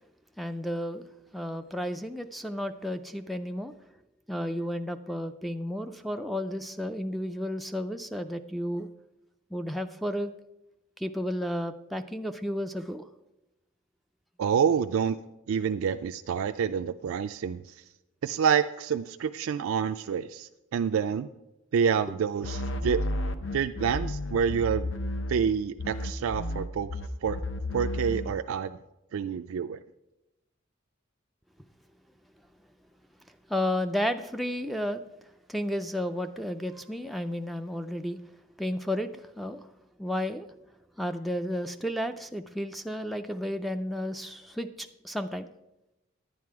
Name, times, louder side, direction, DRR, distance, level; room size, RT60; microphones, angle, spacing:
voice 1, 0.4-1.1 1.3-3.7 4.3-8.9 9.5-10.3 11.0-13.0 33.5-35.0 35.5-38.2 38.6-39.7 40.0-40.5 41.0-45.5, equal, ahead, 5 dB, 0.3 m, -32 dB
voice 2, 14.4-15.2 15.5-17.6 18.2-21.3 21.7-23.0 23.5-24.9 25.3-27.4 27.7-28.8 29.1-29.8, right 7 dB, 85° right, 8 dB, 0.3 m, -28 dB
sound 1, 22.4-25.5 25.8-28.3, left 1 dB, 70° left, 0.7 m, -32 dB
10.0 x 9.3 x 4.7 m, 0.94 s
head